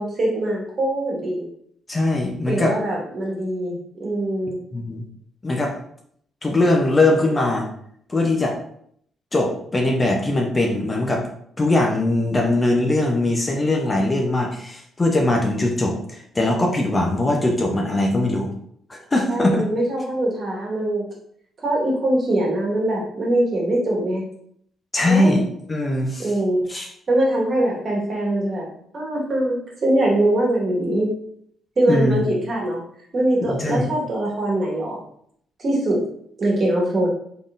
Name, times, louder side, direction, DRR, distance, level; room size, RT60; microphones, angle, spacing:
voice 1, 0.0-1.5 2.5-4.6 19.3-21.1 21.6-24.2 25.1-25.4 26.2-26.6 27.1-28.7 28.9-31.1 31.8-32.8 33.1-35.0 35.6-36.0 36.4-37.1, right 1 dB, 45° right, -2 dB, 1.5 m, -22 dB
voice 2, 1.9-2.7 4.7-5.0 5.4-5.8 6.4-7.7 8.1-8.6 9.3-11.2 11.6-18.5 18.9-19.6 24.9-25.4 25.7-26.3 26.7-26.9 31.9-32.2 33.4-33.9, left 2 dB, 25° left, 1 dB, 0.7 m, -21 dB
3.8 x 3.6 x 2.5 m, 0.67 s
cardioid pair, 90°, 0 cm